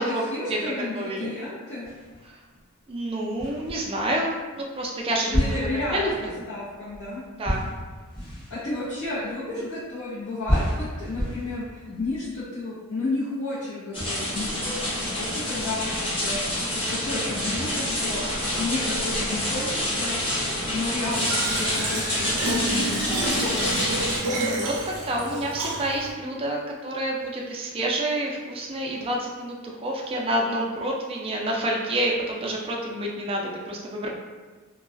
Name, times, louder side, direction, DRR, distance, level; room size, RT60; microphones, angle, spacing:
voice 1, 0.0-1.9 5.3-7.2 8.5-16.5 16.7-18.2 18.6-20.2 20.7-24.3, left 2 dB, 80° left, -12 dB, 0.8 m, -32 dB
voice 2, 0.9-1.3 2.9-5.4 5.9-6.4 7.4-7.7 24.2-34.1, right 1 dB, 25° right, -1 dB, 0.3 m, -28 dB
sound 1, 1.8-2.6 3.4-4.3 5.3-9.8 10.5-12.4, equal, 40° left, 1.0 m, -31 dB
sound 2, 13.9-24.2, left 1 dB, 25° left, 0.6 m, -27 dB
Fill (with liquid), 21.1-26.1, right 2 dB, 85° right, 0.4 m, -29 dB
2.3 x 2.2 x 2.4 m, 1.4 s
head